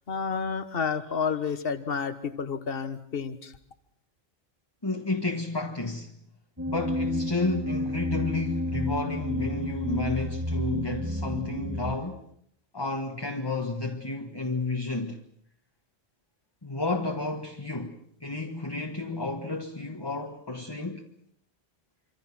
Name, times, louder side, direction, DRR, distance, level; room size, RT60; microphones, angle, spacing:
voice 1, 0.1-3.5, left 6 dB, 60° left, 1.6 m, -30 dB
voice 2, 4.8-6.1 6.7-12.2 12.7-15.2 16.6-21.0, left 2 dB, 20° left, 1.5 m, -31 dB
sound 1, 6.6-11.9, equal, 15° right, 2.5 m, -31 dB
26.5 x 25.5 x 6.1 m
omnidirectional pair, 1.1 m